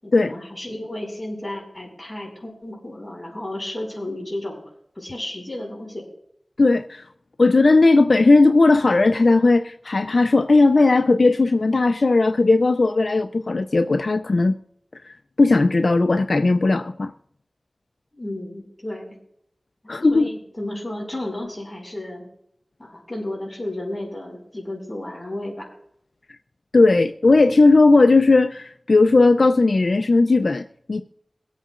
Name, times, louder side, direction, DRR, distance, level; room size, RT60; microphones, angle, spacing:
voice 1, 0.0-4.6 4.9-6.1 18.1-19.2 19.8-22.2 22.8-25.7, left 1 dB, 20° left, 5.1 m, -33 dB
voice 2, 6.6-7.0 7.4-14.5 15.4-17.1 19.9-20.3 26.7-31.0, left 3 dB, 75° left, 0.4 m, -17 dB
23.0 x 8.2 x 2.5 m
wide cardioid pair, 70°, 0 cm